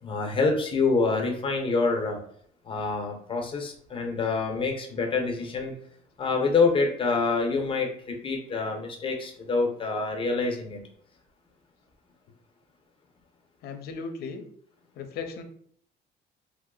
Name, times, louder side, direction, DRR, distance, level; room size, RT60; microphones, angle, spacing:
voice 1, 0.0-2.2 2.6-5.7 6.2-10.8, left 4 dB, 30° left, 2 dB, 0.8 m, -26 dB
voice 2, 13.6-14.4 15.0-15.4, left 5 dB, 70° left, 7 dB, 0.6 m, -36 dB
3.0 x 2.0 x 3.8 m, 0.64 s
cardioid pair, 110°, 17 cm